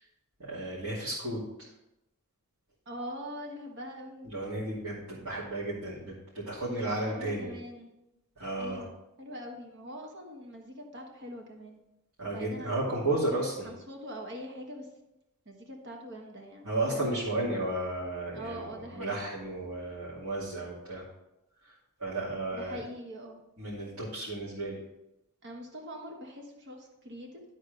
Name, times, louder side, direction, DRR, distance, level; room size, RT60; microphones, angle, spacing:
voice 1, 0.5-1.4 4.2-7.5 8.4-8.8 12.2-13.7 16.6-21.0 22.0-22.8 23.6-24.8, right 2 dB, 75° right, -9 dB, 2.6 m, -33 dB
voice 2, 2.9-4.3 6.6-7.9 8.6-11.8 12.2-13.0 13.6-14.9 15.4-17.2 18.3-19.3 22.5-23.4 25.4-27.4, equal, 50° right, 2 dB, 1.4 m, -43 dB
12.5 x 4.2 x 5.3 m, 0.93 s
head